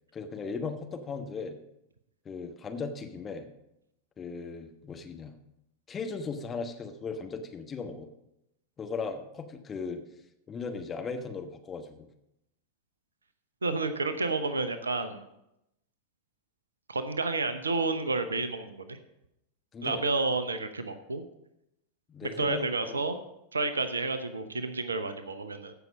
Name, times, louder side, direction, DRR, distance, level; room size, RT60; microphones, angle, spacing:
voice 1, 0.1-1.6 2.2-3.5 4.2-5.4 5.9-8.1 8.8-10.0 10.5-12.1 19.7-20.0 22.1-23.0, left 4 dB, 20° left, 5 dB, 1.2 m, -37 dB
voice 2, 13.6-15.2 16.9-19.0 19.8-21.2 22.2-23.2 23.5-25.7, right 3 dB, 75° right, 11 dB, 0.8 m, -30 dB
15.0 x 5.8 x 5.2 m, 0.84 s
figure-of-eight pair, 90°, 0 cm